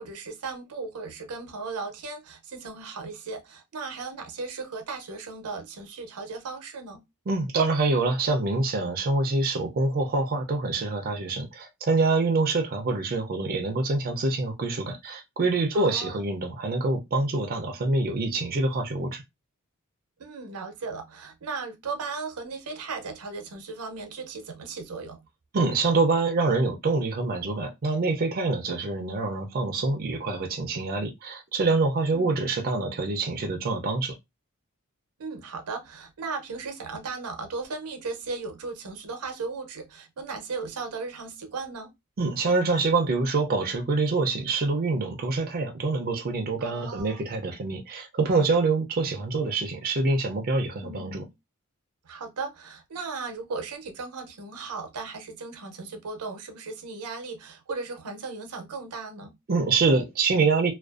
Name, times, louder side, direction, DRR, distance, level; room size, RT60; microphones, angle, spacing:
voice 1, 0.0-7.0 15.7-16.3 20.2-25.2 32.1-32.3 35.2-41.9 46.6-47.3 50.8-51.3 52.0-59.4, right 4 dB, 85° right, 0.6 m, -36 dB
voice 2, 7.3-19.2 25.5-34.2 42.2-51.2 59.5-60.7, right 3 dB, 40° right, 0.4 m, -25 dB
2.4 x 2.2 x 2.3 m
head